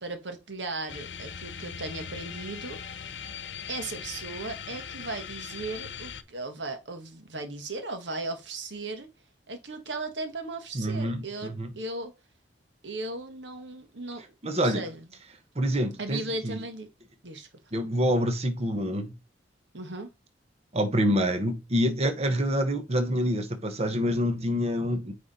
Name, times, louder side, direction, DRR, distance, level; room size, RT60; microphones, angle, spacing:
voice 1, 0.0-2.8 3.7-9.1 9.5-12.1 12.8-14.2 14.5-15.0 16.0-16.9 17.2-17.5 19.7-20.1, right 2 dB, 85° right, 1.5 m, -37 dB
sound 1, 0.9-6.2, left 7 dB, 85° left, 0.8 m, -40 dB
voice 2, 10.7-11.7 14.4-14.8 15.5-16.6 17.7-19.1 20.7-25.1, equal, 35° right, 1.1 m, -27 dB
9.0 x 3.5 x 4.2 m
head